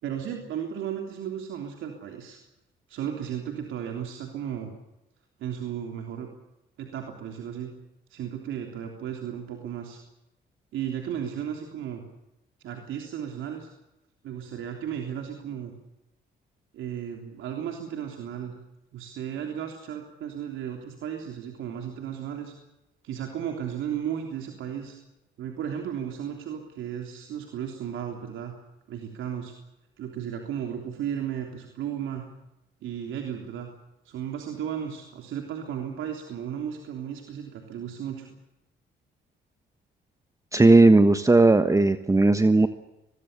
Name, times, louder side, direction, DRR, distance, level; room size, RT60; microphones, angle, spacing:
voice 1, 0.0-2.4 2.9-4.7 5.4-6.3 6.8-7.7 8.1-10.0 10.7-12.0 12.6-13.7 14.2-15.7 16.7-18.5 18.9-22.5 23.0-25.0 25.4-28.5 28.9-29.5 30.0-32.3 32.8-33.7 34.0-38.3, right 9 dB, 80° right, 3 dB, 3.4 m, -34 dB
voice 2, 40.5-42.7, right 2 dB, 15° right, 10 dB, 1.2 m, -17 dB
24.0 x 21.5 x 6.8 m, 0.95 s
cardioid pair, 90°, 20 cm